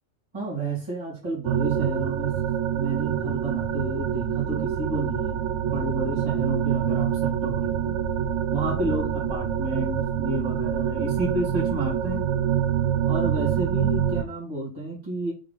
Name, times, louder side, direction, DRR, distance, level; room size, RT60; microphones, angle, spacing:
voice 1, 0.3-2.4 2.7-8.0 8.5-12.3 13.1-15.3, right 1 dB, 20° right, -7 dB, 2.0 m, -31 dB
sound 1, 1.4-14.2, right 9 dB, 70° right, 0.8 m, -26 dB
3.9 x 3.6 x 3.7 m, 0.33 s
omnidirectional pair, 1.4 m